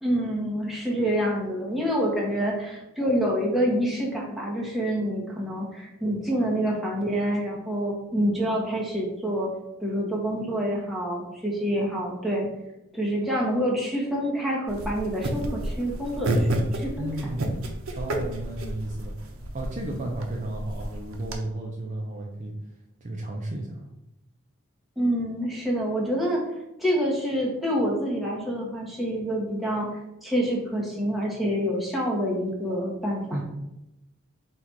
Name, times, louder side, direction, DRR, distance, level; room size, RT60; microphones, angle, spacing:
voice 1, 0.0-9.5 9.8-12.5 12.9-17.1 25.0-26.4 26.8-29.9 30.2-33.4, equal, ahead, -4 dB, 0.9 m, -27 dB
sound 1, 14.7-21.3, right 1 dB, 80° right, 0.6 m, -31 dB
voice 2, 17.0-17.7 18.0-19.1 19.5-22.5 23.0-23.8 33.3-33.4, right 1 dB, 35° right, 0 dB, 0.5 m, -33 dB
4.1 x 2.4 x 4.5 m, 0.89 s
head